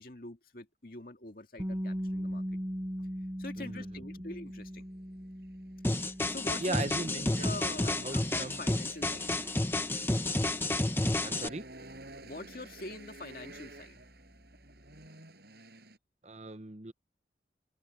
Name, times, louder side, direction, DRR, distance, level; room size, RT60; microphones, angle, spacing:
voice 1, 0.0-2.4 3.0-3.1 3.4-4.8 6.0-8.2 8.6-9.3 12.2-14.0, left 2 dB, 50° left, 2.1 m, -45 dB
sound 1, 1.6-13.4, equal, 20° right, 5.0 m, -41 dB
voice 2, 3.6-4.0 6.6-8.6 11.2-11.7 16.2-16.9, right 2 dB, 40° right, 1.0 m, -39 dB
sound 2, 4.6-16.0, right 2 dB, 60° right, 7.0 m, -53 dB
sound 3, 5.8-11.5, left 2 dB, 10° left, 0.8 m, -30 dB
open air
head